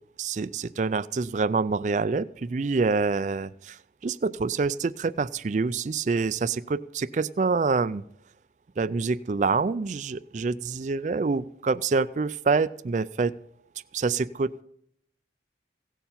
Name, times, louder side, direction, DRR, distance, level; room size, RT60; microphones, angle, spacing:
voice 1, 0.2-8.0 8.8-13.3 13.9-14.6, right 4 dB, 45° right, 16 dB, 0.4 m, -26 dB
17.0 x 6.9 x 5.8 m, 0.72 s
head